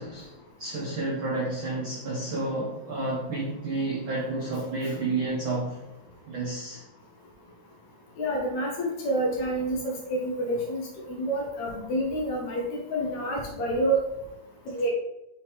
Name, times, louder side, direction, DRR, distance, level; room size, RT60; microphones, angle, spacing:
voice 1, 0.0-5.8 6.2-6.8, right 2 dB, 80° right, -4 dB, 1.1 m, -30 dB
voice 2, 8.2-14.0 14.7-14.9, right 1 dB, 65° left, -1 dB, 2.1 m, -28 dB
5.9 x 3.6 x 4.4 m, 0.90 s
omnidirectional pair, 3.9 m